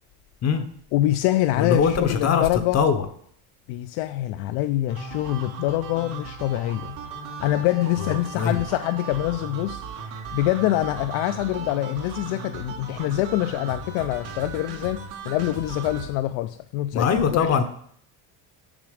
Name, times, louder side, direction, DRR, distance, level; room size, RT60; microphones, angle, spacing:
voice 1, 0.9-2.8 3.7-6.9 7.4-9.8 10.3-17.6, left 15 dB, 75° left, 0.5 m, -25 dB
voice 2, 1.6-2.4 2.7-3.0 8.3-8.6 16.9-17.6, left 6 dB, 35° left, 0.7 m, -21 dB
sound 1, 4.9-16.1, right 5 dB, 90° right, 2.6 m, -37 dB
7.3 x 5.8 x 5.0 m
cardioid pair, 140°, 46 cm